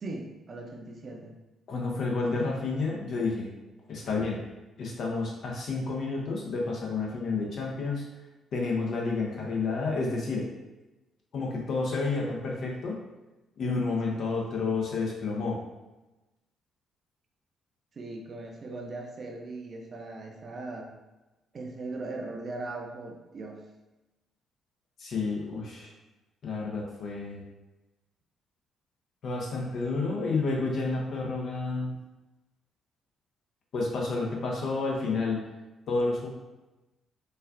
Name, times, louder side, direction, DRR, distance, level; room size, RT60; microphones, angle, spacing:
voice 1, 0.0-1.3 14.1-14.3 17.9-20.9 21.5-23.6, right 2 dB, 50° right, 2 dB, 0.6 m, -39 dB
voice 2, 1.7-3.5 3.9-4.4 4.8-8.0 8.5-10.5 11.3-13.0 13.6-15.6 25.0-25.9 26.4-27.4 29.2-31.9 33.7-35.4 35.9-36.3, left 3 dB, 60° left, -2 dB, 0.8 m, -30 dB
4.3 x 2.4 x 2.5 m, 1.1 s
hypercardioid pair, 45°, 0 cm